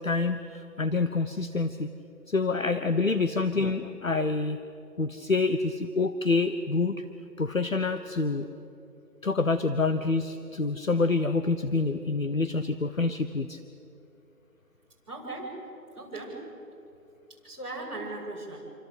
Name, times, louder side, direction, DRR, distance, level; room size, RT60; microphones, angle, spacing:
voice 1, 0.0-1.9 2.3-4.6 5.0-7.0 7.4-8.5 9.2-13.6, left 3 dB, 55° left, 10 dB, 1.1 m, -27 dB
voice 2, 15.1-15.6 16.0-16.4 17.4-18.6, right 2 dB, 20° right, -9 dB, 7.4 m, -38 dB
28.0 x 25.0 x 8.1 m, 2.8 s
figure-of-eight pair, 180°, 48 cm